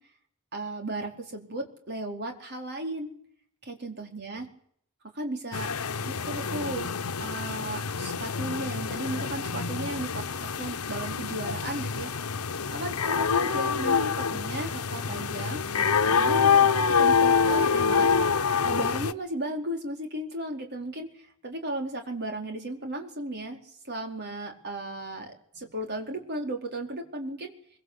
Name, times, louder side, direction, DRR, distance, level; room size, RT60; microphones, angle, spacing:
voice 1, 0.5-3.1 3.6-4.5 5.1-5.7 6.0-6.9 7.2-10.2 10.5-12.1 12.7-18.1 18.6-21.1 21.4-27.5, right 1 dB, 50° right, 3 dB, 4.5 m, -35 dB
sound 1, 5.5-19.1, left 6 dB, 80° left, 1.0 m, -26 dB
24.0 x 23.5 x 8.3 m, 0.65 s
head